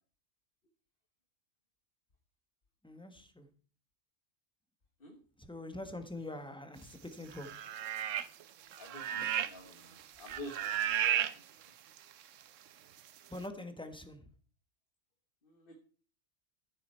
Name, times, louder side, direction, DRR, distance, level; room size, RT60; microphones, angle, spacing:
voice 1, 2.8-3.5 5.5-7.5 9.2-9.4 13.3-14.2, left 1 dB, 5° left, 8 dB, 1.2 m, -44 dB
sound 1, 7.3-8.4 8.7-9.7 10.0-11.3 12.0-12.1, right 10 dB, 85° right, 1.1 m, -33 dB
voice 2, 8.8-11.4 15.4-15.7, left 1 dB, 45° left, 4 dB, 1.6 m, -50 dB
14.0 x 8.0 x 4.5 m, 0.42 s
omnidirectional pair, 1.3 m